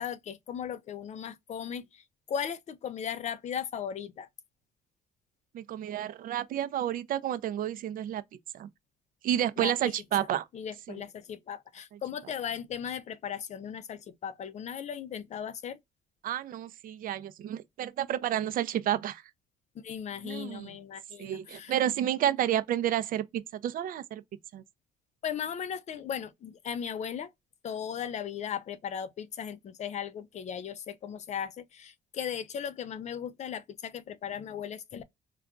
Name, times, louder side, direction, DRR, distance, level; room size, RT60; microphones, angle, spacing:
voice 1, 0.0-4.3 9.6-9.7 10.5-15.8 19.8-21.7 25.2-27.3 27.6-35.0, left 8 dB, 45° left, 0.4 m, -37 dB
voice 2, 5.5-8.2 8.5-8.7 9.2-10.5 10.9-11.0 16.2-19.2 20.2-20.8 21.2-24.2 24.5-24.6, right 11 dB, 55° right, 0.5 m, -30 dB
3.5 x 2.3 x 2.3 m
cardioid pair, 110°, 17 cm